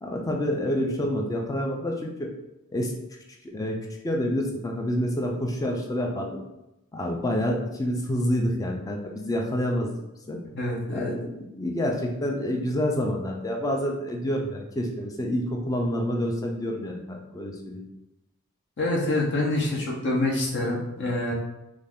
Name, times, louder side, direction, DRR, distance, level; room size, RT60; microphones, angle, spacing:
voice 1, 0.0-2.3 2.7-2.9 3.5-3.8 4.0-6.3 6.9-10.0 10.3-10.4 10.9-17.8, equal, 15° left, 0 dB, 0.4 m, -28 dB
voice 2, 10.5-11.1 18.8-21.3, left 2 dB, 55° left, -2 dB, 0.6 m, -26 dB
2.5 x 2.3 x 3.4 m, 0.93 s
head